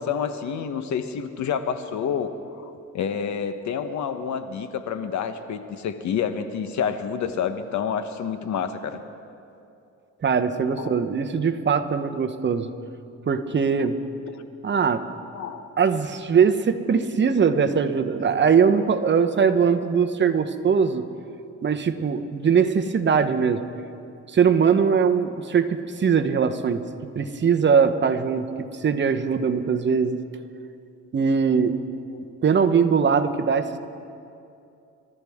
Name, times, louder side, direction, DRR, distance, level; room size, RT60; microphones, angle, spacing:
voice 1, 0.0-9.0 10.8-11.0 13.8-13.9 14.3-14.4 15.3-15.7 32.1-32.2, left 7 dB, 70° left, 9 dB, 1.0 m, -29 dB
voice 2, 10.2-12.7 13.3-14.0 14.6-15.0 15.8-21.0 21.6-23.6 24.3-26.9 27.1-28.5 28.8-30.2 31.1-31.8 32.4-33.8, right 6 dB, 35° right, 8 dB, 0.9 m, -21 dB
27.0 x 13.5 x 3.6 m, 2.7 s
cardioid pair, 90°, 30 cm